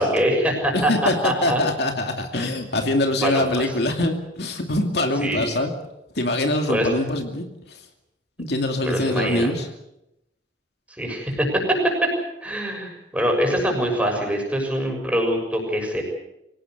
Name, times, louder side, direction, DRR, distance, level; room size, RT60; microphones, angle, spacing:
voice 1, 0.0-0.9 1.2-1.6 3.2-3.7 5.2-5.4 6.7-6.9 8.8-9.5 11.0-11.5 12.4-16.0, equal, 5° right, 1 dB, 6.8 m, -24 dB
voice 2, 0.7-5.7 6.1-7.8 8.4-9.7, left 1 dB, 65° left, 4 dB, 2.6 m, -24 dB
25.0 x 18.0 x 8.0 m, 0.85 s
head